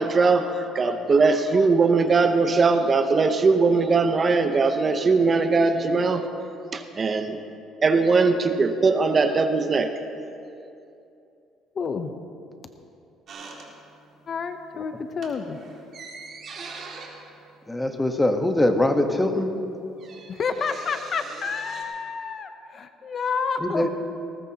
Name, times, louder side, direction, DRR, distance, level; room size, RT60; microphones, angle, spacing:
voice 1, 0.0-6.3 6.7-7.4 7.8-9.9, right 4 dB, 30° right, 8 dB, 0.8 m, -20 dB
voice 2, 11.7-12.1 14.3-15.6 20.3-23.9, left 5 dB, 40° left, 8 dB, 0.8 m, -29 dB
sound 1, 13.3-14.2 14.5-14.7 15.1-18.6 18.8-18.9 19.1-21.8, right 4 dB, 50° right, 2.5 m, -43 dB
voice 3, 17.7-19.5 23.6-23.9, left 1 dB, 10° left, 5 dB, 1.3 m, -22 dB
19.5 x 18.0 x 2.9 m, 2.6 s
cardioid pair, 110°, 0 cm